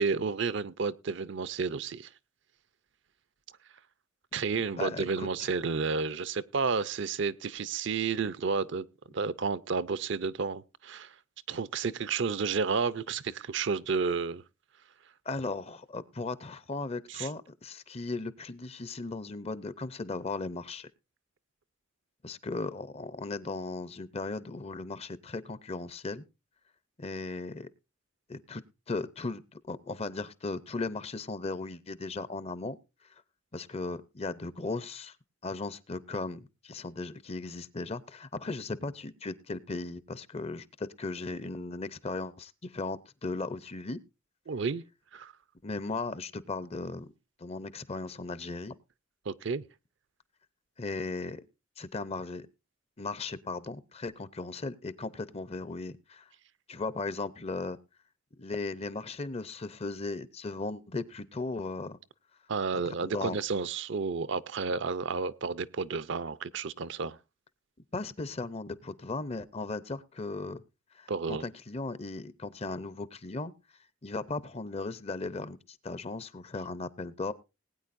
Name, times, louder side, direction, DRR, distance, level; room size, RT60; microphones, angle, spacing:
voice 1, 0.0-2.1 4.3-8.9 9.1-11.1 11.5-14.4 17.1-17.3 44.5-44.8 45.1-45.3 49.3-49.6 62.5-67.2 71.1-71.4, right 5 dB, 60° right, 0.5 m, -31 dB
voice 2, 4.8-5.5 15.3-20.9 22.2-26.2 27.0-27.7 28.3-28.6 28.9-32.8 33.5-35.2 35.4-44.0 45.6-47.1 47.4-48.7 50.8-51.4 51.8-52.5 53.0-56.3 56.7-57.8 58.4-62.0 62.9-63.4 67.9-70.6 70.9-73.5 74.0-77.3, left 3 dB, 30° left, 0.6 m, -37 dB
20.0 x 9.1 x 2.5 m
head